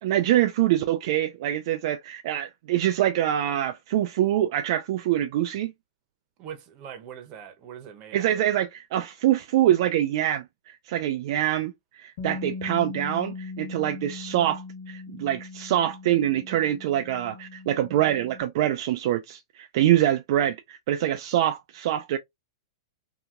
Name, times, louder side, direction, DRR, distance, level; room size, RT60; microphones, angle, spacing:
voice 1, 0.0-5.7 8.1-22.2, right 12 dB, 55° right, 0.3 m, -25 dB
voice 2, 6.4-8.4, right 8 dB, 35° right, 0.8 m, -42 dB
Bass guitar, 12.2-18.4, left 4 dB, 60° left, 1.4 m, -39 dB
2.8 x 2.7 x 2.4 m
hypercardioid pair, 135°, 3 cm